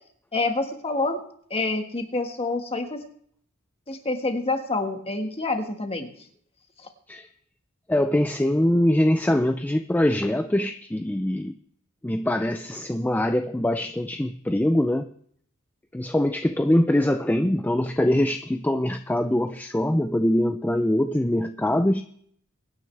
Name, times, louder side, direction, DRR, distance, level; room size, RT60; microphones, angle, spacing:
voice 1, 0.3-1.2 1.5-3.0 3.9-6.1, left 3 dB, 30° left, 5 dB, 1.6 m, -27 dB
voice 2, 7.9-11.6 12.0-15.1 15.9-22.0, left 1 dB, 10° left, 8 dB, 0.4 m, -23 dB
23.0 x 9.6 x 3.3 m, 0.64 s
head